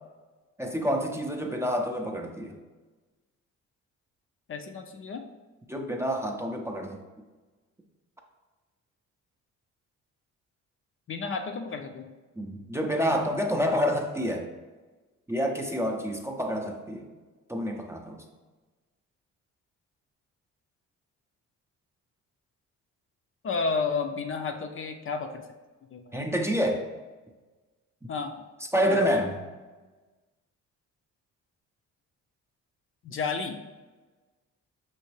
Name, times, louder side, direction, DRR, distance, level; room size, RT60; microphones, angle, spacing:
voice 1, 0.6-2.5 5.7-7.0 12.4-14.5 15.3-17.1 17.5-18.2 26.1-26.9 28.7-29.4, equal, 10° right, 2 dB, 0.5 m, -28 dB
voice 2, 4.5-5.3 11.1-12.1 23.4-25.4 25.9-26.3 28.1-28.4 28.9-29.0 33.0-33.6, left 4 dB, 45° left, 4 dB, 0.5 m, -32 dB
5.6 x 3.1 x 3.1 m, 1.2 s
cardioid pair, 90°, 30 cm